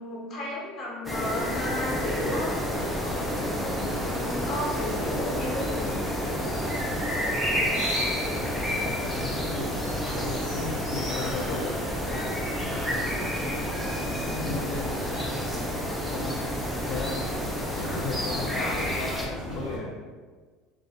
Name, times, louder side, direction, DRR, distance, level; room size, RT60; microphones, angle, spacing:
voice 1, 0.0-2.5 2.9-6.0, left 1 dB, 40° left, -4 dB, 0.7 m, -34 dB
sound 1, 1.0-19.3, equal, ahead, 0.4 m, -30 dB
sound 2, 1.5-19.8, equal, 20° right, 0.8 m, -35 dB
voice 2, 8.8-12.4 14.2-15.5 16.1-16.4 16.9-17.5 17.7-19.9, left 3 dB, 75° left, -3 dB, 0.3 m, -36 dB
2.5 x 2.0 x 2.5 m, 1.5 s
cardioid pair, 145°, 0 cm